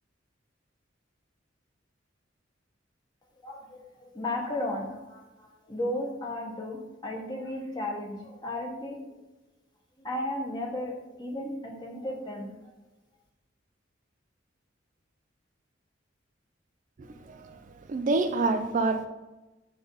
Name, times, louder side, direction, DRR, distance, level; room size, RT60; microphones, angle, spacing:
voice 1, 3.4-3.8 4.1-9.0 10.0-10.9 11.2-12.5, left 1 dB, 25° left, 0 dB, 1.1 m, -34 dB
voice 2, 17.0-19.1, right 3 dB, 40° right, 7 dB, 0.4 m, -28 dB
7.7 x 2.7 x 5.4 m, 1.1 s
head